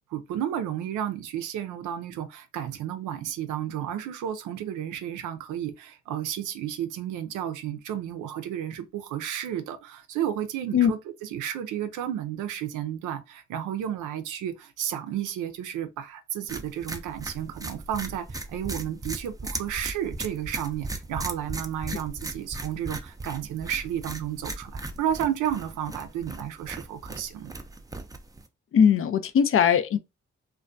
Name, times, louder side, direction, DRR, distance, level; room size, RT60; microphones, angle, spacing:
voice 1, 0.1-27.5, right 10 dB, 80° right, 0.5 m, -32 dB
sound 1, 16.5-28.5, right 2 dB, 10° right, 0.4 m, -37 dB
voice 2, 28.7-30.0, left 7 dB, 45° left, 0.4 m, -20 dB
2.2 x 2.2 x 2.4 m
supercardioid pair, 45°, 30 cm